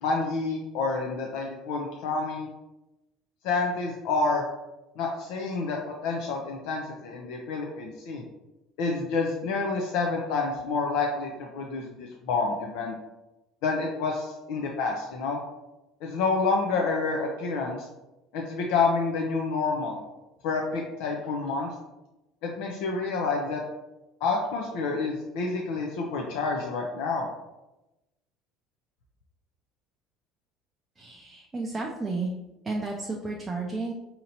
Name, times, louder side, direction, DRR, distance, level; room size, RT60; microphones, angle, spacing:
voice 1, 0.0-2.5 3.4-4.4 5.0-8.2 8.8-12.9 13.6-15.4 16.0-17.9 18.3-20.0 20.4-21.7 22.4-23.6 24.2-27.3, left 4 dB, 75° left, 0 dB, 0.5 m, -28 dB
voice 2, 31.0-32.3 32.6-33.9, right 3 dB, 15° right, -1 dB, 0.4 m, -32 dB
5.1 x 2.9 x 2.7 m, 0.99 s
cardioid pair, 150°, 0 cm